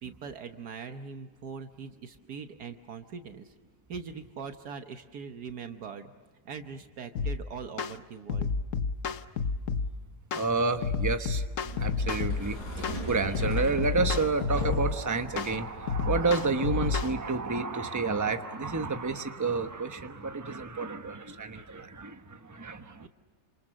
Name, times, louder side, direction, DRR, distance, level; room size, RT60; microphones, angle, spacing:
voice 1, 0.0-3.5 3.9-6.1 6.4-8.5 23.0-23.1, right 5 dB, 70° right, 6 dB, 1.6 m, -41 dB
sound 1, 7.2-7.4 7.8-8.0 8.3-9.9 10.3-10.5 10.8-12.4 12.8-13.0 13.3-15.0 15.4-15.5 15.9-17.1, left 5 dB, 55° left, 1.2 m, -30 dB
voice 2, 10.3-11.4 11.8-23.1, right 4 dB, 15° right, 7 dB, 0.9 m, -30 dB
sound 2, 11.6-17.3, equal, 75° left, 6.6 m, -40 dB
27.5 x 27.5 x 6.5 m, 1.5 s
omnidirectional pair, 1.8 m